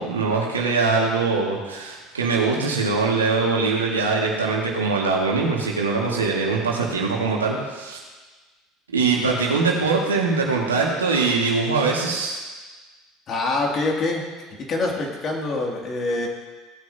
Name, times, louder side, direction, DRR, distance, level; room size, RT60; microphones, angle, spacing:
voice 1, 0.0-8.0 8.9-12.4, right 4 dB, 90° right, -2 dB, 1.9 m, -22 dB
voice 2, 13.3-14.2 14.7-16.3, left 2 dB, 40° left, 0 dB, 2.5 m, -25 dB
17.5 x 9.4 x 2.8 m, 1.3 s
hypercardioid pair, 70°, 0 cm